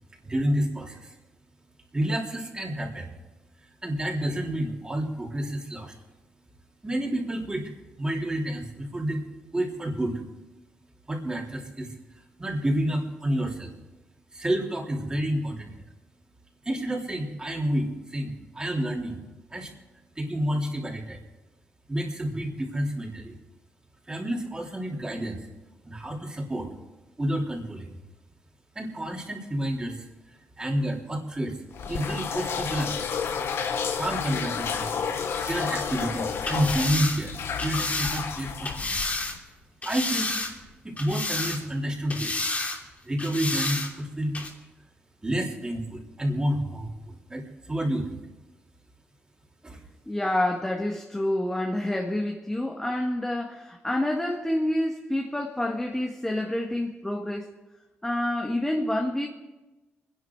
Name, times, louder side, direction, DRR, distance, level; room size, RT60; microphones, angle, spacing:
voice 1, 0.2-1.1 1.9-3.1 3.8-5.9 6.8-7.7 8.0-9.2 9.5-10.2 11.1-11.9 12.4-13.7 14.3-15.7 16.6-19.3 19.5-19.7 20.2-21.2 21.9-23.3 24.1-25.5 25.8-26.7 27.2-28.0 28.8-31.6 31.9-33.1 34.0-34.9 35.3-37.4 37.6-39.1 39.8-40.3 40.8-42.5 43.0-44.4 45.2-48.2 49.6-49.8, right 1 dB, 20° right, 3.6 m, -29 dB
sound 1, 31.7-39.4, left 6 dB, 75° left, 1.3 m, -31 dB
sound 2, 36.4-39.4 39.8-40.7 41.0-41.8 42.1-42.8 43.2-43.9 44.3-44.5, left 2 dB, 35° left, 3.1 m, -30 dB
voice 2, 50.1-57.5 58.0-59.3, left 1 dB, 10° left, 1.6 m, -28 dB
25.0 x 11.0 x 4.8 m
cardioid pair, 85°, 4 cm